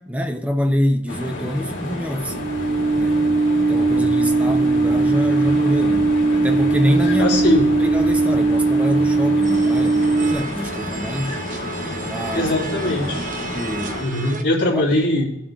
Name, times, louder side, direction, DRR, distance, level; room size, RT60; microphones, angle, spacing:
voice 1, 0.0-2.4 3.0-3.2 3.6-7.4 7.8-11.4 12.0-12.5 13.5-14.1 14.7-14.9, equal, 5° right, 0.5 m, -25 dB
sound 1, 1.1-14.0, left 1 dB, 70° left, 2.0 m, -30 dB
sound 2, 2.3-10.3, right 3 dB, 65° right, 1.2 m, -19 dB
voice 2, 7.2-7.7 12.3-13.3 14.0-15.2, left 1 dB, 55° left, 2.8 m, -20 dB
sound 3, 9.4-14.4, right 4 dB, 40° right, 0.8 m, -34 dB
16.5 x 7.5 x 2.4 m
head